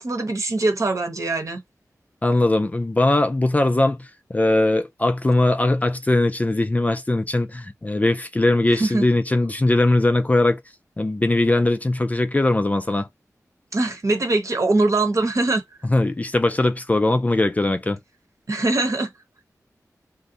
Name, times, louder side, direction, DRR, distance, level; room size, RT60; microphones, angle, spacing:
voice 1, 0.0-1.6 8.7-9.0 13.7-15.6 18.5-19.1, right 2 dB, 55° right, 0.9 m, -22 dB
voice 2, 2.2-10.6 11.0-13.1 15.9-18.0, left 2 dB, 25° left, 0.4 m, -20 dB
2.6 x 2.1 x 3.8 m
wide cardioid pair, 70°, 6 cm